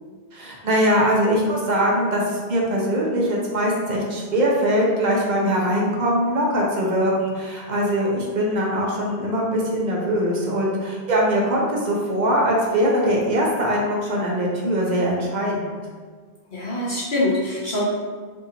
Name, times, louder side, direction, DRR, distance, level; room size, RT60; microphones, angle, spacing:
voice 1, 0.3-15.7, equal, 50° right, -3 dB, 0.7 m, -22 dB
voice 2, 16.5-17.9, left 1 dB, 55° left, -7 dB, 0.8 m, -24 dB
3.7 x 2.7 x 2.8 m, 1.6 s
omnidirectional pair, 1.1 m